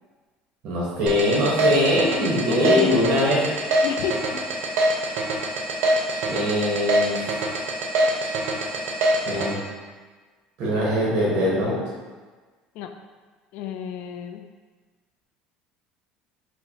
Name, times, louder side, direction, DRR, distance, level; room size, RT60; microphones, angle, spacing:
voice 1, 0.6-3.4 6.3-7.3 9.2-9.6 10.6-11.8, equal, 60° right, -5 dB, 0.9 m, -22 dB
sound 1, 1.1-9.5, right 1 dB, 75° right, 0.6 m, -23 dB
voice 2, 2.5-3.1 3.8-4.8 12.7-12.9 13.5-14.4, left 7 dB, 70° left, 6 dB, 0.3 m, -30 dB
4.6 x 2.0 x 2.7 m, 1.4 s
supercardioid pair, 110°, 3 cm